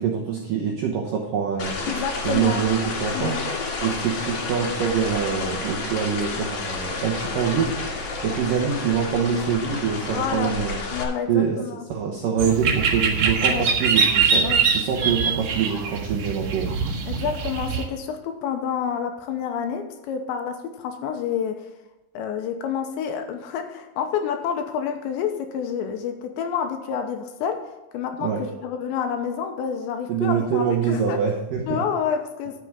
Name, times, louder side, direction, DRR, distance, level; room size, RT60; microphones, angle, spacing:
voice 1, 0.0-1.7 2.2-3.4 3.8-7.8 8.2-10.8 11.3-11.6 11.9-16.7 28.2-28.4 30.1-31.8, right 7 dB, 75° right, -1 dB, 2.0 m, -25 dB
sound 1, 1.6-11.0, left 3 dB, 50° left, 2.3 m, -30 dB
voice 2, 1.9-2.6 3.1-3.5 10.1-10.6 10.9-11.9 13.4-13.7 14.4-14.6 15.0-15.1 17.1-21.7 22.1-31.2 31.7-32.6, left 7 dB, 80° left, 6 dB, 2.9 m, -29 dB
sound 2, 12.4-17.8, right 5 dB, 55° right, 2.1 m, -23 dB
11.0 x 7.7 x 4.9 m, 1.1 s
omnidirectional pair, 5.6 m